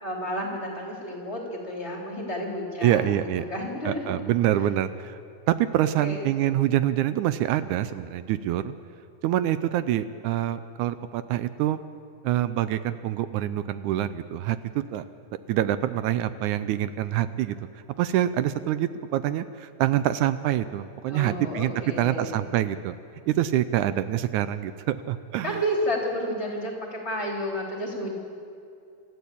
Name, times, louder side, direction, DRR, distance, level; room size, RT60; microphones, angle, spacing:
voice 1, 0.0-4.2 5.8-6.2 21.1-22.3 25.4-28.1, equal, 20° left, -1 dB, 3.8 m, -31 dB
voice 2, 2.8-3.4 3.9-5.2 5.5-8.7 9.2-11.8 12.2-14.6 14.9-15.0 15.5-17.6 18.0-21.7 22.0-23.0 23.3-25.6, right 12 dB, 80° right, 13 dB, 2.1 m, -25 dB
27.5 x 14.0 x 8.6 m, 2.6 s
omnidirectional pair, 3.5 m